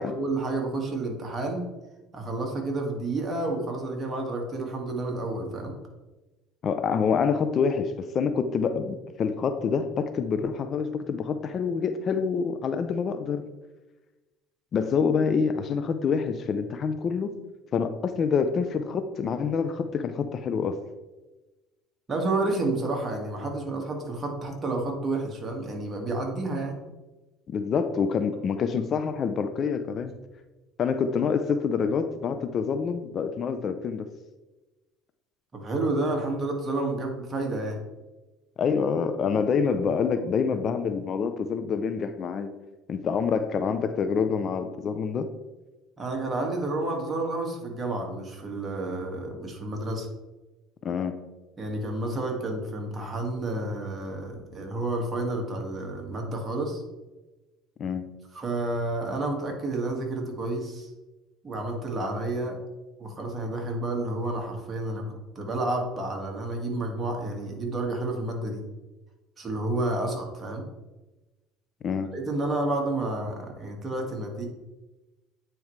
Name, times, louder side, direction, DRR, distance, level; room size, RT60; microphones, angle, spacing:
voice 1, 0.2-1.7 2.1-5.7 22.1-26.8 35.5-37.8 46.0-50.1 51.6-56.8 58.3-60.9 61.4-62.6 63.0-65.0 65.4-68.6 69.4-70.6 72.1-74.5, right 2 dB, 30° right, 1 dB, 1.9 m, -30 dB
voice 2, 6.6-13.4 14.7-17.3 17.7-20.8 27.5-30.1 30.8-34.1 38.6-42.5 42.9-45.3 50.8-51.1 57.8-58.1 71.8-72.1, left 6 dB, 45° left, 9 dB, 0.6 m, -26 dB
9.0 x 4.6 x 3.2 m, 1.1 s
supercardioid pair, 90°, 0 cm